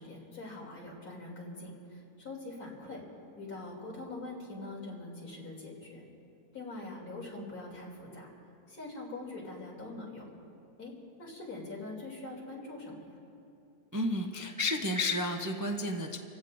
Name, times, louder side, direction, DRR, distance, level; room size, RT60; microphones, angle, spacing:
voice 1, 0.0-3.0 3.4-6.1 6.5-8.3 8.7-10.2 10.8-10.9 11.2-13.1, left 2 dB, 65° left, -3 dB, 3.6 m, -43 dB
voice 2, 13.9-16.2, left 2 dB, 20° right, 1 dB, 0.4 m, -31 dB
28.0 x 16.0 x 2.6 m, 2.7 s
omnidirectional pair, 1.7 m